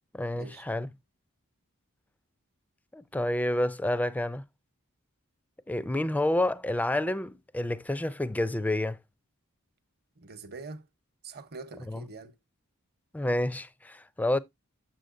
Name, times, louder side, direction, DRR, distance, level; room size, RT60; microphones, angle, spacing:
voice 1, 0.1-0.9 2.9-4.4 5.7-9.0 11.9-12.0 13.1-14.4, left 1 dB, 5° left, 0.4 m, -29 dB
voice 2, 10.2-10.9 11.2-12.3, right 4 dB, 45° right, 0.9 m, -44 dB
7.7 x 6.9 x 2.5 m
head